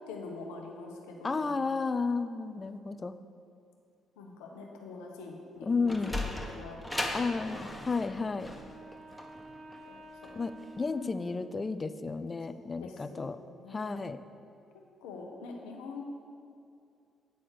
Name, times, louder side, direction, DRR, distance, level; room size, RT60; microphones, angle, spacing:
voice 1, 0.1-1.5 2.5-3.0 4.2-5.9 6.5-7.1 7.4-7.7 9.8-10.4 11.0-11.2 12.8-14.0 15.0-16.0, left 3 dB, 80° left, 1 dB, 0.9 m, -45 dB
voice 2, 1.2-3.1 5.6-6.2 7.1-8.5 10.3-13.4 13.7-14.2, left 4 dB, 35° left, 11 dB, 0.4 m, -32 dB
Sliding door, 5.6-10.8, left 1 dB, 5° left, 1.3 m, -38 dB
Wind instrument woodwind instrument, 7.7-12.0, right 1 dB, 55° right, 0.8 m, -51 dB
9.2 x 4.2 x 6.5 m, 2.4 s
hypercardioid pair, 50°, 0 cm